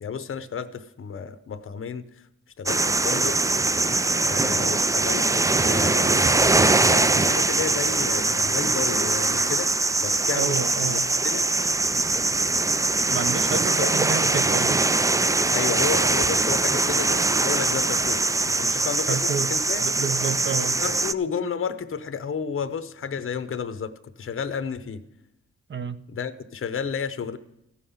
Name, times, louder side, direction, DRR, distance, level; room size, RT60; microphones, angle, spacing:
voice 1, 0.0-2.1 2.6-3.4 4.3-6.3 6.9-9.7 10.0-11.5 13.8-13.9 15.5-19.8 20.8-23.9 24.2-25.0 26.1-27.4, left 6 dB, 45° left, 11 dB, 0.8 m, -32 dB
sound 1, 2.7-21.1, right 2 dB, 10° right, 0.3 m, -22 dB
voice 2, 10.4-11.1 13.1-14.8 19.1-19.5 19.8-20.8 25.7-26.0, right 6 dB, 40° right, 12 dB, 0.8 m, -29 dB
14.5 x 5.6 x 7.0 m, 0.87 s
cardioid pair, 85°, 30 cm